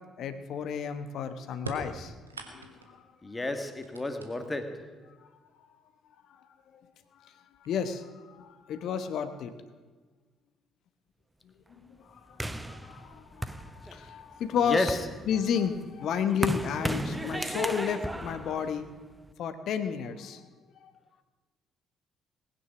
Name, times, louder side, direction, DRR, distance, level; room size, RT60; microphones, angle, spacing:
voice 1, 0.2-2.1 2.5-3.0 7.1-7.3 7.6-9.5 11.7-15.0 15.3-18.9 19.4-20.4 20.8-20.9, left 7 dB, 55° left, 10 dB, 1.1 m, -32 dB
sound 1, 1.6-3.0 3.6-4.7 5.8-5.9 6.9-7.0 7.4-7.9, right 2 dB, 85° right, 1.2 m, -42 dB
voice 2, 3.2-5.0 14.5-15.0 17.2-17.3, left 2 dB, 20° left, 8 dB, 1.8 m, -32 dB
sound 2, 12.4-14.2 14.7-19.3, right 1 dB, 10° right, 0.8 m, -35 dB
19.5 x 9.9 x 6.1 m, 1.4 s
figure-of-eight pair, 45°, 0 cm